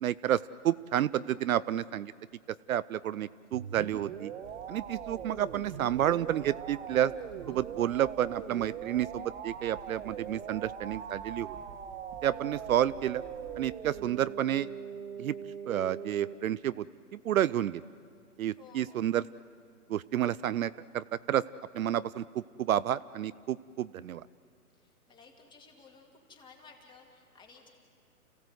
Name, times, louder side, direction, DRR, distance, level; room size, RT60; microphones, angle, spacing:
voice 1, 0.0-2.1 2.7-4.3 4.7-7.1 7.5-11.6 12.2-13.2 13.6-14.7 15.2-15.3 15.7-16.8 17.1-17.8 18.4-19.2 19.9-21.4 21.7-22.2 22.6-24.2, right 11 dB, 65° right, 17 dB, 0.5 m, -30 dB
sound 1, 3.5-16.3, right 8 dB, 50° right, 1.3 m, -42 dB
sound 2, 4.4-14.1, right 4 dB, 30° right, 2.0 m, -54 dB
voice 2, 7.4-7.9 12.1-12.7 18.6-19.2 24.7-27.7, left 5 dB, 10° left, 1 dB, 2.1 m, -56 dB
29.5 x 16.0 x 7.9 m, 2.1 s
hypercardioid pair, 145°, 45 cm